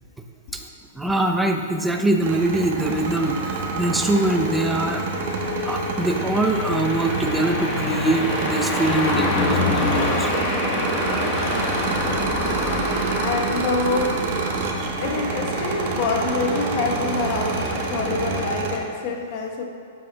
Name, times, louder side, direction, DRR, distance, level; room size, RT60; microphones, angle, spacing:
voice 1, 1.0-5.0 5.6-10.3, right 1 dB, 5° right, 3 dB, 0.6 m, -23 dB
sound 1, 2.2-18.8, right 4 dB, 55° right, 1.1 m, -28 dB
sound 2, 2.7-18.4, left 2 dB, 20° left, 1.4 m, -28 dB
Telephone, 3.0-6.0 6.2-6.9 7.2-7.5, left 3 dB, 25° right, 2.1 m, -34 dB
voice 2, 12.5-14.2 15.0-19.6, left 3 dB, 50° left, 2 dB, 1.1 m, -26 dB
11.5 x 7.7 x 2.3 m, 2.4 s
hypercardioid pair, 130°, 0 cm